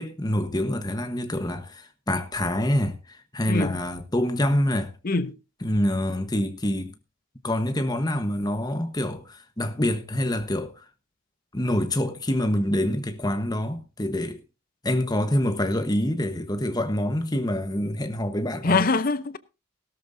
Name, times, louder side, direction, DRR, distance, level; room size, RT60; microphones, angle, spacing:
voice 1, 0.0-4.9 5.6-6.9 7.4-10.8 11.5-14.4 14.8-18.8, left 1 dB, 20° left, 1.2 m, -26 dB
voice 2, 5.0-5.4 18.6-19.4, left 3 dB, 45° left, 0.7 m, -23 dB
17.0 x 13.0 x 2.7 m
head